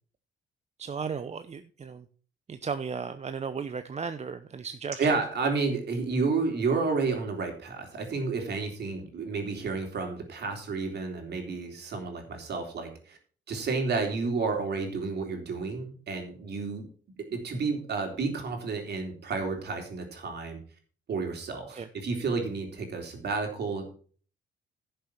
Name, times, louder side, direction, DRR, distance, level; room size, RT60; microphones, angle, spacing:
voice 1, 0.8-2.0 2.5-5.0 21.7-21.9, right 5 dB, 35° right, 10 dB, 0.7 m, -35 dB
voice 2, 5.0-13.2 13.5-16.9 17.2-20.6 21.1-23.9, right 4 dB, 55° right, 3 dB, 3.6 m, -31 dB
11.0 x 6.9 x 5.8 m, 0.43 s
cardioid pair, 90°, 20 cm